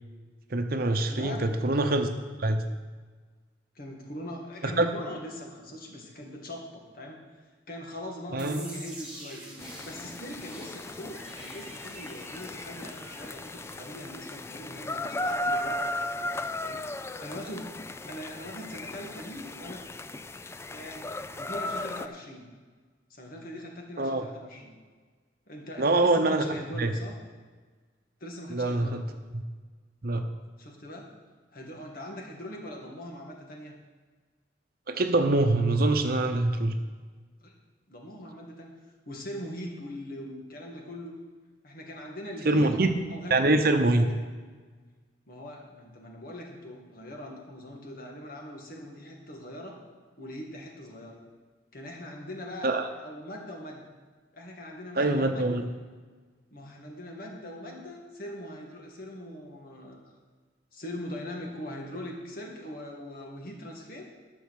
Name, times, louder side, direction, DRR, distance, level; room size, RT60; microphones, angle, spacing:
voice 1, 0.5-2.1 2.4-2.6 4.6-4.9 8.3-8.6 24.0-24.3 25.8-26.4 26.8-26.9 28.5-29.0 29.3-29.4 30.0-30.3 34.9-36.8 42.5-42.9 43.3-44.1 52.6-52.9 55.0-55.6, right 2 dB, 55° right, 6 dB, 0.9 m, -24 dB
voice 2, 1.1-1.6 3.8-7.2 7.7-16.0 16.6-16.9 17.2-17.8 18.1-19.8 20.7-22.5 23.1-24.8 25.5-27.2 28.2-29.0 30.6-31.1 31.5-33.8 37.4-37.5 37.9-38.8 39.1-41.2 41.6-42.7 43.1-43.5 43.9-44.1 45.3-49.8 50.2-51.2 51.7-52.7 53.0-53.8 54.3-55.4 56.5-60.0 60.7-64.0, left 1 dB, 50° left, 0 dB, 2.0 m, -41 dB
sound 1, 8.4-15.2, right 1 dB, 5° right, 2.3 m, -47 dB
sound 2, 9.6-22.1, left 1 dB, 15° left, 0.3 m, -36 dB
12.0 x 6.4 x 6.5 m, 1.4 s
head